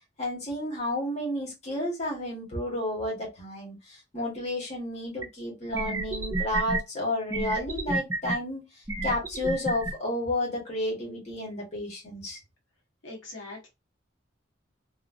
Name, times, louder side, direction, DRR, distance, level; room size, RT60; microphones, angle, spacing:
voice 1, 0.2-3.8 4.1-8.6 9.0-12.4, left 1 dB, 35° left, 1.4 m, -31 dB
sound 1, 5.2-5.3 5.7-6.8 7.3-8.4 8.9-9.9, right 2 dB, 15° right, 0.4 m, -29 dB
voice 2, 13.0-13.7, left 2 dB, 90° left, 1.3 m, -41 dB
3.1 x 2.6 x 2.5 m
head